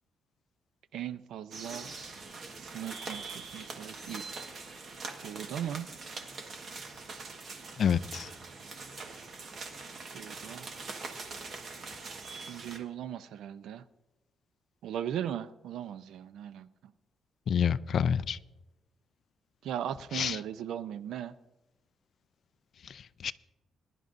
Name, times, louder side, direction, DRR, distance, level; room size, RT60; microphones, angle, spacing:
voice 1, 0.9-1.9 2.6-4.3 5.2-5.9 10.1-10.7 12.5-13.8 14.8-16.7 19.6-21.3, right 10 dB, 80° right, 0.5 m, -38 dB
sound 1, 1.5-12.8, right 4 dB, 40° right, 1.4 m, -43 dB
voice 2, 7.8-8.3 17.5-18.4 20.1-20.4 23.2-23.3, left 8 dB, 45° left, 0.4 m, -27 dB
21.0 x 11.0 x 2.6 m
cardioid pair, 155°, 0 cm